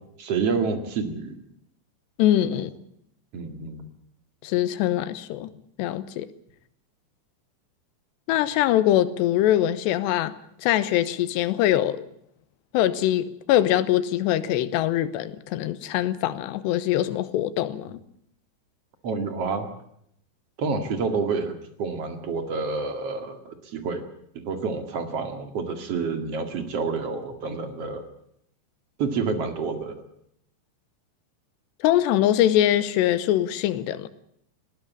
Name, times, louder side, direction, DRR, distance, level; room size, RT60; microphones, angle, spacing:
voice 1, 0.2-1.4 3.3-3.9 19.0-19.7 20.6-24.0 24.3-28.0 29.0-30.0, right 4 dB, 45° right, 2.4 m, -28 dB
voice 2, 2.2-2.7 4.4-5.5 5.8-6.3 8.3-12.1 12.7-18.0 31.8-34.1, left 12 dB, 75° left, 3.0 m, -23 dB
20.0 x 17.0 x 8.5 m
omnidirectional pair, 5.2 m